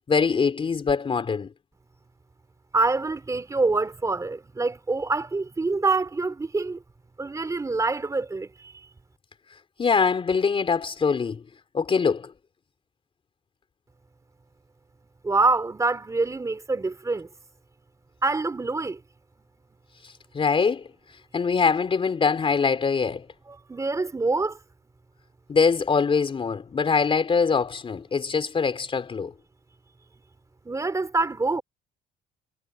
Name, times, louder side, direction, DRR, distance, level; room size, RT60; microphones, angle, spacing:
voice 1, 0.1-1.5 9.8-11.4 11.7-12.3 20.3-20.9 21.3-23.3 25.5-29.3, left 5 dB, 30° left, 3.9 m, -23 dB
voice 2, 2.7-6.8 7.2-8.7 15.2-17.3 18.2-19.0 23.5-24.6 30.6-31.6, right 3 dB, 20° right, 3.0 m, -25 dB
cardioid pair, 110°, 17 cm